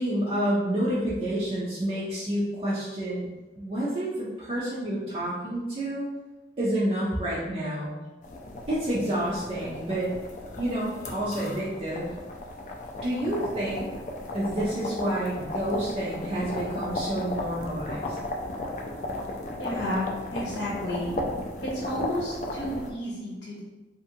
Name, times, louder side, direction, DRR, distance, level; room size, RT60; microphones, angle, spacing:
voice 1, 0.0-3.3 3.6-6.1 6.6-7.9 8.7-10.1 10.6-12.1 13.0-13.9 14.3-18.2, right 1 dB, 35° right, -8 dB, 0.4 m, -29 dB
sound 1, 8.2-22.9, left 1 dB, 45° left, 0.3 m, -35 dB
voice 2, 19.6-21.1 21.6-23.6, left 1 dB, 85° left, -4 dB, 0.8 m, -31 dB
2.6 x 2.5 x 2.7 m, 1.1 s
head